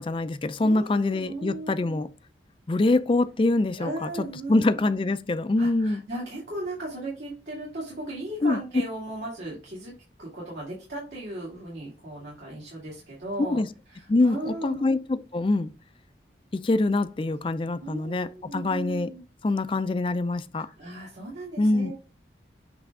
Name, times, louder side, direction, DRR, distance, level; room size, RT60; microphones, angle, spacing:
voice 1, 0.0-2.1 2.7-4.1 4.5-6.0 8.4-8.6 13.4-13.7 14.1-15.7 16.5-19.1 19.4-20.7 21.6-21.9, left 2 dB, 30° left, 0.3 m, -24 dB
voice 2, 0.6-2.0 3.8-5.1 5.6-13.6 13.9-14.9 17.8-19.2 20.6-21.9, right 2 dB, 70° right, 2.2 m, -37 dB
7.9 x 3.4 x 3.5 m
head